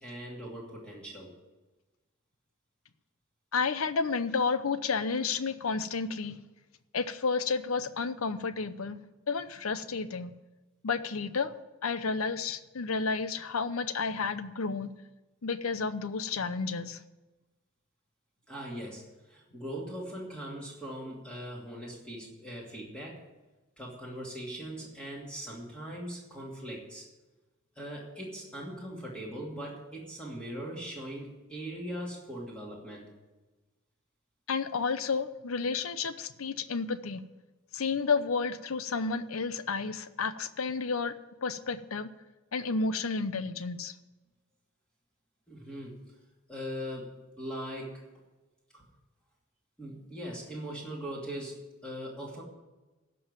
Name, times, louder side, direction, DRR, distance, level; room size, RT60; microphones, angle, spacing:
voice 1, 0.0-1.3 18.5-23.2 23.8-27.1 27.8-33.1 45.5-46.0 46.5-48.1 48.7-48.8 49.8-52.4, equal, 5° left, -4 dB, 2.6 m, -40 dB
voice 2, 3.5-6.4 6.9-9.0 9.3-10.3 10.8-11.5 11.8-14.9 15.4-17.0 34.5-37.2 37.7-41.1 41.4-42.1 42.5-43.9, left 4 dB, 80° left, 13 dB, 0.7 m, -31 dB
15.0 x 5.5 x 9.0 m, 1.1 s
head